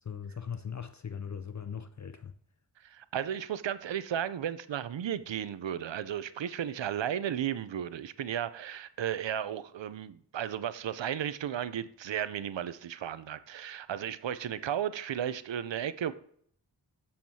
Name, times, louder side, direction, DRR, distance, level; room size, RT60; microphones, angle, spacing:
voice 1, 0.0-2.3, left 7 dB, 40° left, 0.5 m, -39 dB
voice 2, 2.8-16.1, right 9 dB, 80° right, 0.5 m, -34 dB
7.5 x 7.2 x 2.7 m
wide cardioid pair, 50°, 44 cm